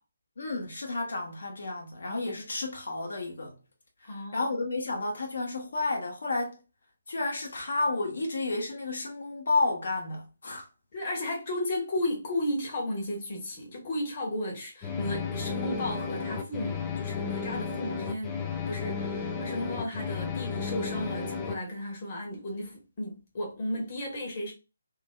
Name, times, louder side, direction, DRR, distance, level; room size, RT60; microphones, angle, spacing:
voice 1, 0.4-3.6 4.0-6.6 7.1-10.7, left 2 dB, 60° left, 1.1 m, -31 dB
voice 2, 4.0-4.5 10.9-18.4 18.7-24.5, left 1 dB, 35° left, 1.2 m, -34 dB
sound 1, 14.8-21.5, left 5 dB, 20° left, 0.5 m, -33 dB
2.8 x 2.6 x 2.2 m
figure-of-eight pair, 145°, 0 cm